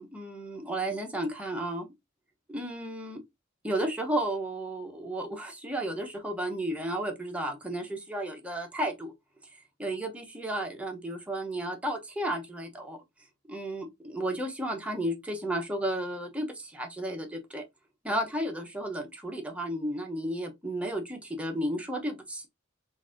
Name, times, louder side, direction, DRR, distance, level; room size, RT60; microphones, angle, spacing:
voice 1, 0.0-1.9 2.5-3.2 3.6-9.1 9.8-13.0 13.5-17.6 18.0-22.5, right 1 dB, 5° right, 0.7 m, -33 dB
3.9 x 2.5 x 2.4 m
head